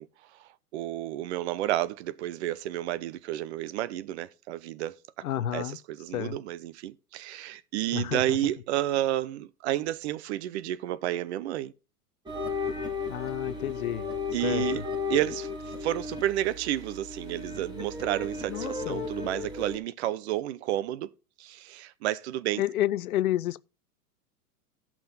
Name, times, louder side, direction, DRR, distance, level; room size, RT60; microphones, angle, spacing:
voice 1, 0.0-5.0 5.4-11.7 14.3-14.8 15.1-15.5 15.8-21.1 21.4-22.6, right 13 dB, 45° right, 0.6 m, -31 dB
voice 2, 5.2-5.8 6.1-6.4 7.9-8.4 13.1-14.1 14.4-14.7 18.5-19.1 22.6-23.6, left 13 dB, 70° left, 0.6 m, -30 dB
sound 1, 12.2-19.8, left 4 dB, 10° right, 2.4 m, -34 dB
16.0 x 6.0 x 2.6 m
figure-of-eight pair, 100°, 46 cm